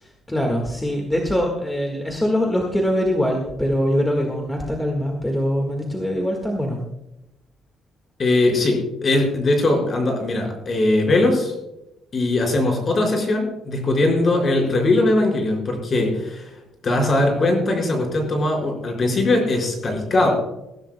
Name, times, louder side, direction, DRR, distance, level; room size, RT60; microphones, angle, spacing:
voice 1, 0.3-6.8, equal, 10° left, 1 dB, 1.6 m, -23 dB
voice 2, 8.2-11.5 12.1-16.5 16.8-20.3, left 2 dB, 35° left, 0 dB, 4.7 m, -20 dB
21.5 x 15.0 x 2.2 m, 0.91 s
cardioid pair, 160°, 0 cm